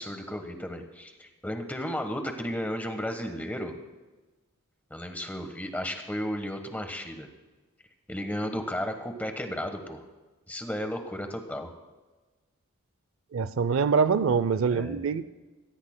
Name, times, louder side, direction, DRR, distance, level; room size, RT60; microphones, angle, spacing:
voice 1, 0.0-3.7 4.9-7.3 8.1-10.0 10.5-11.7 14.7-15.0, equal, 5° left, 5 dB, 1.2 m, -34 dB
voice 2, 13.3-15.2, right 5 dB, 65° right, 14 dB, 0.4 m, -24 dB
22.5 x 16.5 x 2.2 m, 1.2 s
head